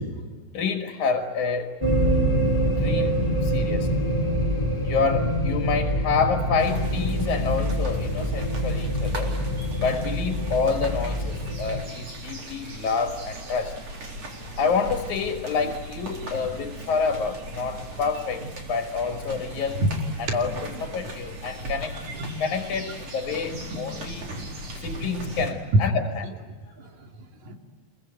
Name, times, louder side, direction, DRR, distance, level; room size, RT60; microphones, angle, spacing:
voice 1, 0.5-1.7 2.8-3.1 3.4-4.0 4.8-9.3 9.8-13.7 14.3-19.8 20.2-22.0 22.4-24.4 24.8-26.3, left 5 dB, 85° left, 4 dB, 3.0 m, -28 dB
sound 1, 1.8-11.8, equal, 10° left, 3.1 m, -25 dB
sound 2, 6.6-25.5, right 1 dB, 55° right, 5.1 m, -39 dB
voice 2, 20.3-20.6 22.0-22.4 23.5-23.8 24.2-24.5 24.9-25.5 25.7-25.8 26.8-27.1 27.5-27.6, right 1 dB, 75° right, 2 dB, 3.9 m, -28 dB
26.5 x 22.5 x 9.0 m, 1.4 s
omnidirectional pair, 3.3 m